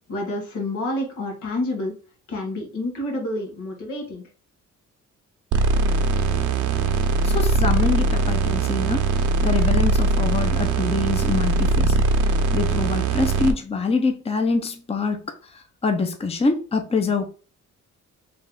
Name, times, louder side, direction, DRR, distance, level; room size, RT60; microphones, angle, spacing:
voice 1, 0.1-1.9 2.3-4.2, left 1 dB, 80° left, 1.8 m, -28 dB
sound 1, 5.5-13.5, right 3 dB, 75° right, 0.8 m, -21 dB
voice 2, 7.2-17.3, left 4 dB, 20° left, 0.7 m, -25 dB
3.5 x 3.2 x 3.8 m
cardioid pair, 90°, 30 cm